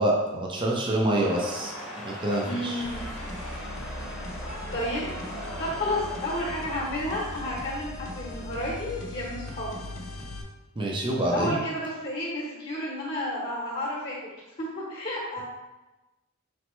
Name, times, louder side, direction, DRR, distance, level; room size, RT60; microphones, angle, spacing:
voice 1, 0.0-1.7 2.0-2.8 10.8-11.6, right 1 dB, 25° right, -2 dB, 0.5 m, -26 dB
sound 1, 1.1-6.9, equal, 5° right, 0.9 m, -39 dB
voice 2, 2.4-3.0 4.3-4.4 4.7-9.8 11.2-14.3 14.6-15.4, left 1 dB, 35° left, -4 dB, 0.9 m, -31 dB
sound 2, 2.8-10.4, left 1 dB, 70° left, 0.6 m, -39 dB
4.1 x 3.3 x 3.0 m, 1.1 s
head